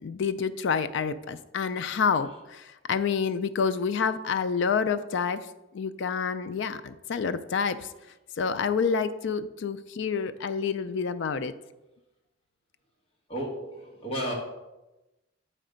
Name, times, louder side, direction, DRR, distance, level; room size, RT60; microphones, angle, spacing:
voice 1, 0.0-5.5 5.7-7.9 8.4-11.5, left 6 dB, 60° left, 13 dB, 0.4 m, -28 dB
voice 2, 13.3-14.3, equal, 30° left, -3 dB, 1.6 m, -33 dB
8.7 x 3.2 x 5.0 m, 1.0 s
head